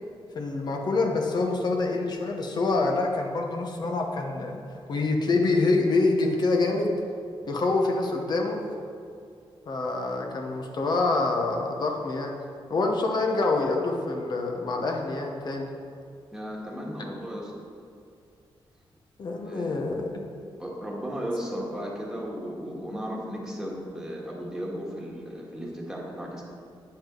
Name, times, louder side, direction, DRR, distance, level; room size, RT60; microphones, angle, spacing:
voice 1, 0.3-4.6 4.9-6.9 7.5-8.6 9.7-12.4 12.7-15.7 19.2-20.3, left 3 dB, 50° left, 2 dB, 1.0 m, -26 dB
voice 2, 16.3-17.5 19.4-20.0 20.6-26.4, equal, 5° right, -4 dB, 1.6 m, -35 dB
9.2 x 8.6 x 3.8 m, 2.4 s
wide cardioid pair, 155°, 9 cm